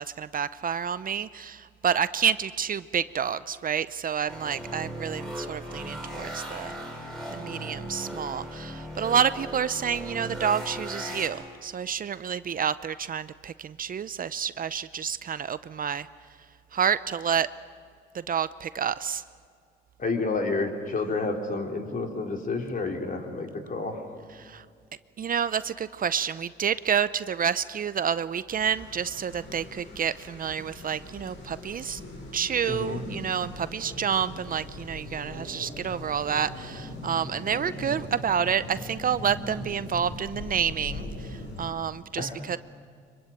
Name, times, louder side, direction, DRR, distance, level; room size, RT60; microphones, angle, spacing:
voice 1, 0.0-6.7 7.3-16.1 16.7-17.5 18.1-19.2 24.4-24.6 25.2-32.0 32.3-42.6, right 7 dB, 45° right, 15 dB, 0.6 m, -29 dB
sound 1, 4.3-11.3, equal, ahead, 6.5 m, -37 dB
voice 2, 20.0-24.0 32.7-33.0 42.2-42.4, left 3 dB, 45° left, 3 dB, 3.9 m, -30 dB
sound 2, 28.5-41.7, left 1 dB, 70° left, 5.8 m, -40 dB
24.5 x 23.0 x 8.8 m, 2.2 s
cardioid pair, 90°, 20 cm